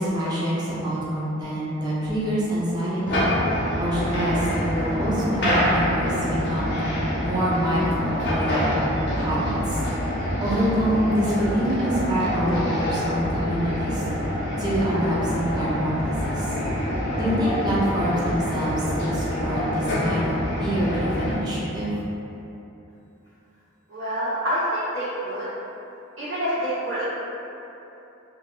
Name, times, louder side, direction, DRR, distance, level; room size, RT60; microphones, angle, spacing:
voice 1, 0.0-3.2 3.8-6.8 7.2-8.8 9.1-9.8 10.4-14.0 14.6-16.5 17.2-21.9, equal, 20° right, -8 dB, 0.5 m, -26 dB
sound 1, 3.1-21.3, equal, 55° left, 0.7 m, -26 dB
voice 2, 23.9-25.5 26.2-27.0, equal, 85° right, -13 dB, 0.8 m, -27 dB
4.2 x 2.5 x 2.2 m, 3.0 s
head